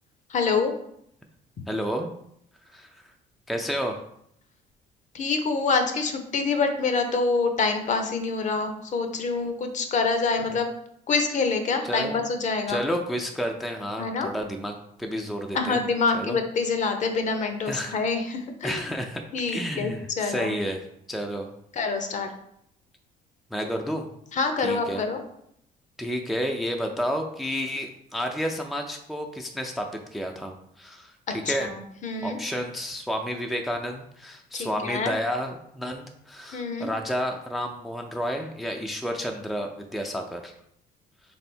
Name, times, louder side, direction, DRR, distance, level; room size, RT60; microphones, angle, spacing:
voice 1, 0.3-0.7 5.1-10.7 11.1-12.8 14.0-14.3 15.5-18.9 19.3-19.9 20.2-20.5 21.7-22.3 24.3-25.2 31.4-31.5 32.0-32.4 34.5-35.1 36.5-36.9, left 4 dB, 45° left, 6 dB, 0.7 m, -26 dB
voice 2, 1.7-2.1 2.7-2.9 3.5-4.0 11.8-12.2 12.7-15.8 16.1-16.4 17.7-18.0 18.6-19.2 19.5-21.5 23.5-24.1 24.6-25.0 26.0-31.7 32.2-40.5, equal, ahead, 3 dB, 0.4 m, -31 dB
3.6 x 3.4 x 4.3 m, 0.72 s
cardioid pair, 110°, 17 cm